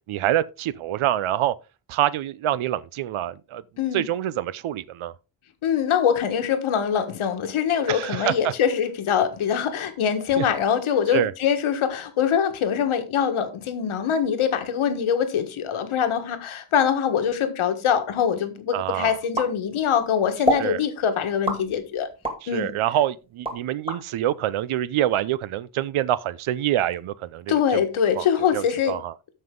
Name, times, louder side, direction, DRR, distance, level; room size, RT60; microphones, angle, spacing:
voice 1, 0.1-1.5 1.9-3.6 3.9-5.1 7.9-8.5 10.4-10.5 11.1-11.3 18.7-19.2 20.6-20.8 22.4-27.8 28.2-29.1, right 12 dB, 85° right, 0.7 m, -26 dB
voice 2, 5.6-22.1 22.5-22.7 27.5-29.0, left 8 dB, 85° left, 1.6 m, -23 dB
sound 1, 19.3-20.0 20.4-20.7 21.4-22.4 22.9-24.0, equal, 10° right, 2.2 m, -26 dB
13.5 x 5.6 x 3.7 m
wide cardioid pair, 170°, 48 cm